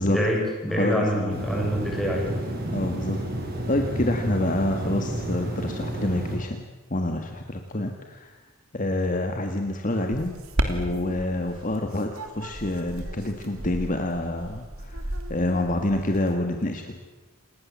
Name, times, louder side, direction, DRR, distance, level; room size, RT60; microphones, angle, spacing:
voice 1, 0.1-2.3, equal, ahead, -2 dB, 6.7 m, -26 dB
voice 2, 0.7-1.5 2.7-3.2 3.7-8.3 8.7-10.4 10.7-17.0, left 1 dB, 35° left, 5 dB, 1.7 m, -27 dB
sound 1, 1.3-6.4, right 1 dB, 45° right, 6.0 m, -31 dB
sound 2, 9.9-16.3, right 1 dB, 80° right, 3.1 m, -34 dB
28.0 x 20.5 x 7.4 m, 1.2 s
head